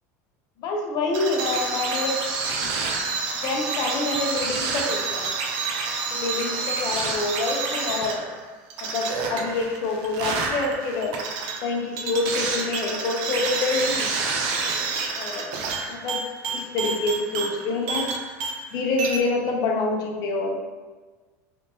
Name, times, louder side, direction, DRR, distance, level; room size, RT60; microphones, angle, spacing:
voice 1, 0.6-2.2 2.6-2.7 3.1-3.2 3.4-5.3 6.1-8.3 8.8-11.2 11.6-14.1 15.2-15.5 15.9-16.2 16.5-18.1 18.7-20.6, left 3 dB, 55° left, 1 dB, 0.6 m, -27 dB
sound 1, 1.1-18.7 19.0-19.2, right 4 dB, 65° right, 0.5 m, -28 dB
3.4 x 2.6 x 2.7 m, 1.3 s
supercardioid pair, 105°, 8 cm